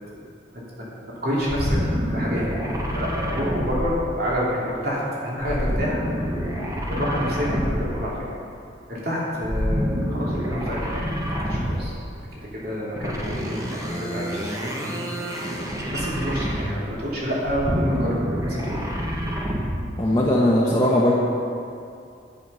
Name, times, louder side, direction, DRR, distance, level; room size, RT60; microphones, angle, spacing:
voice 1, 1.0-1.8 2.1-6.0 6.9-8.2 8.9-11.9 12.6-15.1 15.9-18.8, equal, 55° right, -6 dB, 2.8 m, -28 dB
sound 1, 1.5-4.5 5.4-8.1 9.4-12.0 12.9-16.9 17.4-19.9, equal, 20° right, 1.2 m, -27 dB
voice 2, 20.0-21.1, left 1 dB, 20° left, -6 dB, 1.1 m, -19 dB
11.0 x 9.9 x 5.5 m, 2.5 s
head